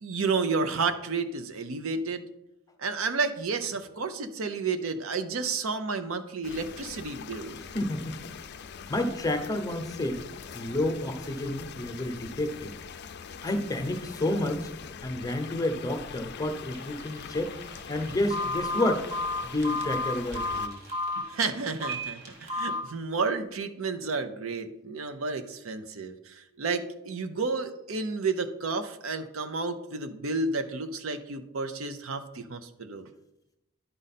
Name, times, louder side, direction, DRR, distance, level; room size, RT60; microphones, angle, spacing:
voice 1, 0.0-2.3 2.8-7.6 21.2-33.1, right 4 dB, 75° right, 9 dB, 0.7 m, -31 dB
sound 1, 6.4-20.7, left 7 dB, 55° left, 0.4 m, -43 dB
voice 2, 7.7-8.2 8.9-10.2 10.5-12.7 13.4-14.7 15.0-17.5 17.9-19.1 19.4-20.8, left 1 dB, 15° left, 5 dB, 0.8 m, -30 dB
sound 2, 16.4-22.8, right 2 dB, 50° right, 2.1 m, -53 dB
Telephone, 18.3-21.2 21.8-22.1 22.5-22.8, left 2 dB, 35° right, 1.2 m, -30 dB
11.0 x 5.1 x 4.2 m, 0.88 s
head